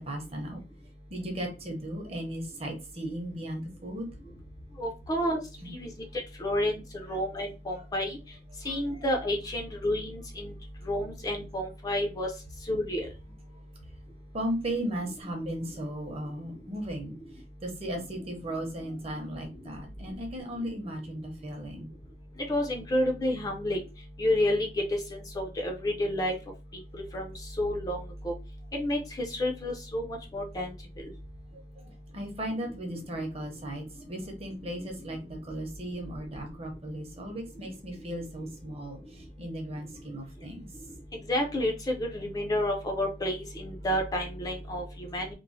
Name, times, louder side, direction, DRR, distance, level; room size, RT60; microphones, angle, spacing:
voice 1, 0.1-0.6 1.1-4.1 5.6-5.7 7.1-7.2 8.6-8.8 14.3-17.1 17.6-21.9 32.1-40.7, right 1 dB, 35° right, 3 dB, 0.7 m, -36 dB
voice 2, 4.8-5.4 5.7-5.9 6.4-6.8 7.1-8.2 8.6-10.5 10.9-12.3 12.7-13.1 22.5-23.8 24.2-24.7 25.4-26.3 27.1-28.0 28.2-28.3 28.7-29.0 29.3-30.1 30.3-30.7 41.3-45.3, left 1 dB, 20° left, 1 dB, 0.4 m, -29 dB
3.0 x 2.0 x 2.5 m, 0.30 s
head